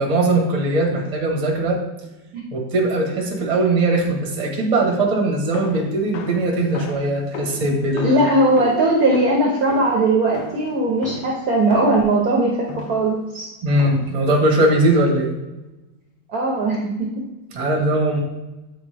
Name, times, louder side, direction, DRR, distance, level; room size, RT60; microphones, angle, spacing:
voice 1, 0.0-1.8 2.5-8.2 13.6-15.3 17.5-18.2, right 2 dB, 25° right, 0 dB, 0.8 m, -20 dB
sound 1, 5.5-12.2 12.7-13.1 13.8-14.3, left 4 dB, 80° left, 1.4 m, -35 dB
voice 2, 8.0-12.6 12.9-13.5 16.3-16.9, right 2 dB, 60° right, -1 dB, 1.0 m, -19 dB
7.9 x 4.2 x 3.3 m, 1.0 s
omnidirectional pair, 2.2 m